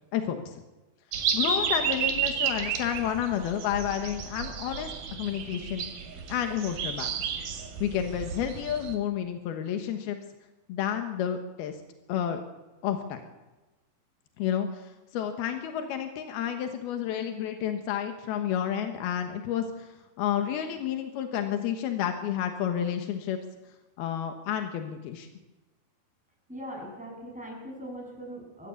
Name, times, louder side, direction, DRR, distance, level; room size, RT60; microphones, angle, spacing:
voice 1, 0.1-0.6 1.3-5.9 6.3-7.1 7.8-10.2 10.7-11.8 12.1-12.4 12.8-13.2 14.4-14.8 15.1-19.9 20.2-23.4 24.0-25.3, left 9 dB, 90° left, 6 dB, 3.2 m, -30 dB
sound 1, 1.1-9.0, right 6 dB, 75° right, 4.0 m, -32 dB
voice 2, 26.5-28.7, equal, ahead, -1 dB, 7.4 m, -40 dB
23.0 x 14.5 x 8.4 m, 1.1 s
omnidirectional pair, 4.3 m